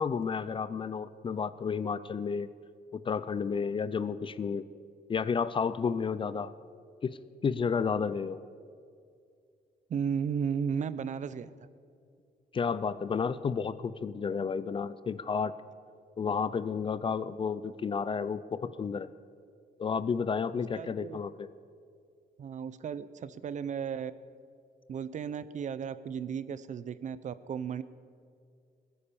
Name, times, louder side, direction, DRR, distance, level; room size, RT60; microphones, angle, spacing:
voice 1, 0.0-2.5 2.9-4.7 5.1-6.5 7.0-7.1 7.4-8.4 12.5-15.5 16.2-19.1 19.8-21.5, left 6 dB, 30° left, 16 dB, 0.4 m, -31 dB
voice 2, 9.9-11.5 20.5-21.2 22.4-24.1 24.9-27.8, right 7 dB, 45° right, 15 dB, 0.5 m, -35 dB
20.0 x 9.9 x 7.0 m, 2.3 s
wide cardioid pair, 155°, 17 cm